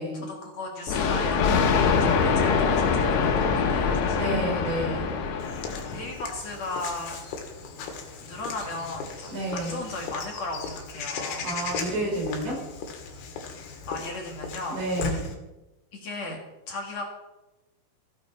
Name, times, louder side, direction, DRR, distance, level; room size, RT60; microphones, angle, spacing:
voice 1, 0.1-4.4 5.7-7.2 8.2-11.5 12.5-12.8 13.9-14.8 15.1-15.2 15.9-16.4 16.7-17.0, left 2 dB, 50° left, 1 dB, 2.7 m, -36 dB
Thunder, 0.9-6.2, left 5 dB, 90° left, 3.7 m, -24 dB
voice 2, 4.2-5.2 9.3-9.9 11.4-12.6 14.7-15.3, right 1 dB, 85° right, -2 dB, 7.4 m, -30 dB
Walk footsteps / Bird vocalization bird call bird song, 5.4-15.3, left 5 dB, 75° left, 3.8 m, -37 dB
16.0 x 14.0 x 4.4 m, 1.0 s
omnidirectional pair, 4.6 m